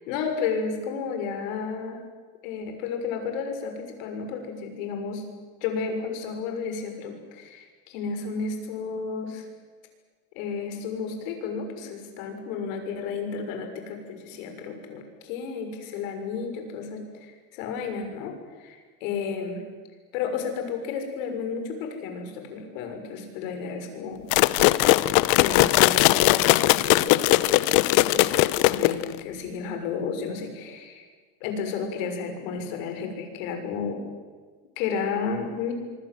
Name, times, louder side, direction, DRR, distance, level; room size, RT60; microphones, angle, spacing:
voice 1, 0.1-2.0 2.4-5.2 5.6-9.5 10.3-18.3 18.6-19.6 20.1-24.3 25.3-27.2 27.9-28.3 28.7-31.0 31.4-34.0 34.8-35.7, left 5 dB, 85° left, 5 dB, 6.5 m, -32 dB
sound 1, 24.3-29.2, left 18 dB, 65° left, 1.0 m, -19 dB
26.0 x 24.0 x 7.8 m, 1.5 s
cardioid pair, 150°, 38 cm